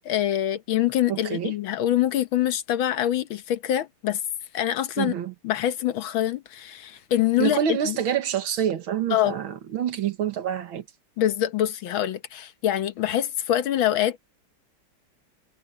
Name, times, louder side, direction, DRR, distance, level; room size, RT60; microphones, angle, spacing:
voice 1, 0.0-4.2 4.5-5.1 5.4-8.0 9.1-9.3 11.2-14.2, left 12 dB, 75° left, 1.8 m, -25 dB
voice 2, 1.1-1.6 5.0-5.3 7.4-10.8, right 9 dB, 80° right, 2.2 m, -27 dB
omnidirectional pair, 2.2 m